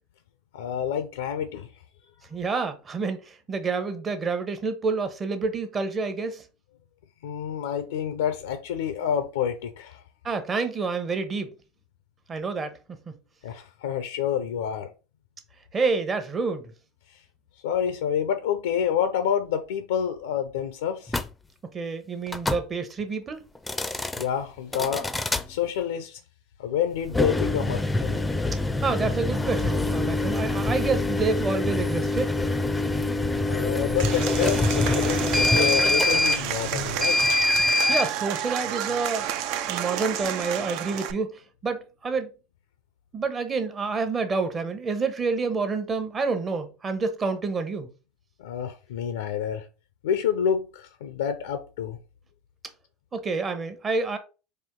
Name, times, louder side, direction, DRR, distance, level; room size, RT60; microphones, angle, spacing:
voice 1, 0.5-1.7 7.2-10.0 13.4-14.9 17.1-17.2 17.6-21.1 24.2-25.1 25.5-26.2 26.6-28.3 33.5-37.2 48.4-49.7 50.0-52.0, left 8 dB, 85° left, 0.5 m, -28 dB
voice 2, 2.3-6.4 10.2-11.5 12.3-12.8 13.1-13.2 15.7-16.7 21.7-23.4 28.8-32.3 37.9-39.3 39.7-42.3 43.1-47.9 53.1-54.2, right 4 dB, 25° right, 0.9 m, -28 dB
sound 1, 21.1-21.3 22.3-22.6 23.5-24.2 24.7-25.4 27.0-38.1, left 2 dB, 10° left, 0.5 m, -25 dB
Applause / Crowd, 34.0-41.1, right 10 dB, 65° right, 0.4 m, -31 dB
4.3 x 2.6 x 3.6 m
supercardioid pair, 105°, 0 cm